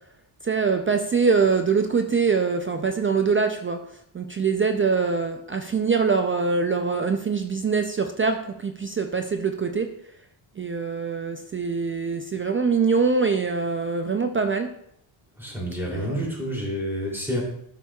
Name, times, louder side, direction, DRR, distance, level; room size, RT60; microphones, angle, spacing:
voice 1, 0.4-3.8 4.1-9.9 10.6-14.7 15.9-16.2, right 5 dB, 30° right, 6 dB, 0.4 m, -23 dB
voice 2, 15.4-17.4, equal, 5° right, -3 dB, 2.8 m, -29 dB
12.5 x 6.0 x 2.3 m, 0.71 s
wide cardioid pair, 150°, 50 cm